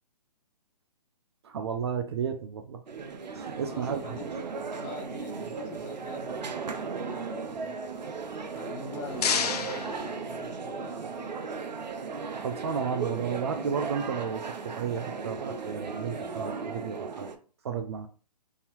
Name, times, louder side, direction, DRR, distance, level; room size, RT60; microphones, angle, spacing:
voice 1, 1.4-2.8 3.3-4.1 12.4-17.4 17.6-18.1, right 7 dB, 40° right, 6 dB, 0.4 m, -33 dB
sound 1, 2.9-17.4, right 5 dB, 90° right, 0.6 m, -36 dB
voice 2, 3.6-4.5 4.8-7.8 8.5-11.3, left 3 dB, 20° left, 1 dB, 0.8 m, -44 dB
sound 2, 8.7-10.9, left 7 dB, 65° left, 0.5 m, -32 dB
3.7 x 2.7 x 2.9 m, 0.38 s
hypercardioid pair, 145°, 21 cm